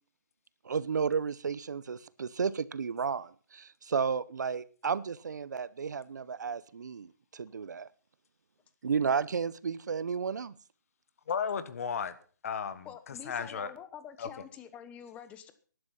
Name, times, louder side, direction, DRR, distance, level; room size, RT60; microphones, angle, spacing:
voice 1, 0.6-7.9 8.8-10.5, right 6 dB, 70° right, 0.8 m, -33 dB
voice 2, 11.3-12.1 12.4-13.7 14.2-14.3, left 7 dB, 50° left, 1.5 m, -34 dB
voice 3, 12.8-15.5, left 9 dB, 15° left, 1.0 m, -47 dB
14.5 x 11.5 x 5.6 m
hypercardioid pair, 155°, 10 cm